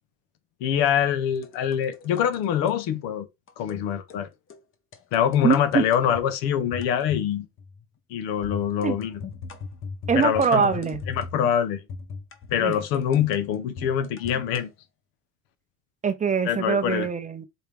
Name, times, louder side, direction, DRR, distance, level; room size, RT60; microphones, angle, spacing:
voice 1, 0.6-3.3 3.6-4.3 5.1-7.5 8.1-9.2 10.1-10.6 11.1-11.8 12.5-14.7 16.5-17.1, left 9 dB, 85° left, 1.0 m, -24 dB
sound 1, 1.4-2.8 3.5-3.8 4.1-4.2 4.5-4.6 4.9-6.3 6.7-7.3 7.6-7.8 8.4-11.5 11.9-14.6, left 5 dB, 35° left, 0.9 m, -39 dB
voice 2, 5.4-5.8 8.8-9.0 10.1-11.0 12.6-12.8 16.0-17.5, right 6 dB, 20° right, 0.6 m, -23 dB
4.5 x 3.4 x 3.4 m
cardioid pair, 120°, 34 cm